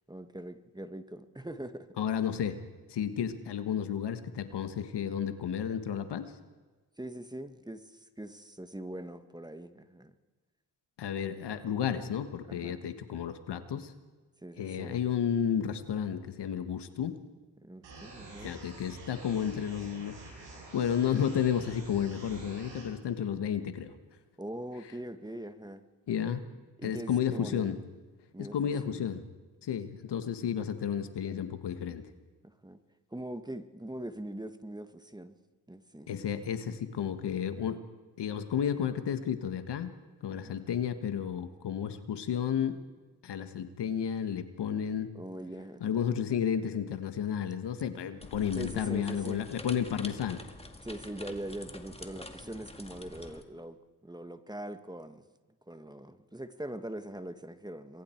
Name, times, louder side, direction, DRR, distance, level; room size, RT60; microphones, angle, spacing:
voice 1, 0.1-1.9 7.0-10.1 12.4-12.8 14.4-15.0 17.6-18.6 24.4-25.8 26.8-27.7 28.3-28.6 28.8-28.9 32.4-32.8 33.1-35.4 35.7-36.1 40.3-40.6 45.1-46.0 48.6-49.4 50.8-55.2 55.7-58.0, right 1 dB, 10° right, 9 dB, 1.6 m, -42 dB
voice 2, 2.0-2.6 2.9-6.3 11.0-13.9 14.6-17.2 18.4-20.5 20.7-23.9 26.1-26.4 26.8-27.8 28.4-29.2 29.6-32.1 36.1-37.8 38.2-39.9 40.2-42.8 43.2-45.1 45.8-50.4, left 8 dB, 75° left, 9 dB, 1.6 m, -32 dB
sound 1, 17.8-22.8, right 2 dB, 90° right, 7.8 m, -48 dB
sound 2, 48.2-53.4, left 2 dB, 15° left, 2.2 m, -46 dB
27.0 x 22.0 x 4.6 m, 1.3 s
cardioid pair, 60°, 41 cm